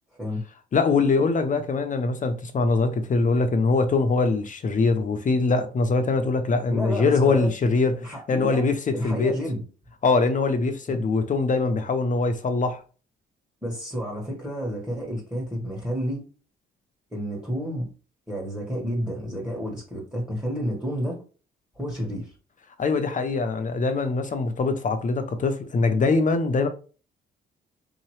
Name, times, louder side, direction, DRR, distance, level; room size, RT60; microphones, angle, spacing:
voice 1, 0.7-9.3 10.0-12.8 22.8-26.7, left 3 dB, 40° left, 0.6 m, -23 dB
voice 2, 6.7-7.5 7.9-8.7 8.9-9.6 10.9-11.0 13.6-16.2 17.1-17.9 18.3-21.2 21.7-22.3, equal, 5° right, 1.4 m, -30 dB
3.9 x 2.9 x 3.1 m
cardioid pair, 90°, 20 cm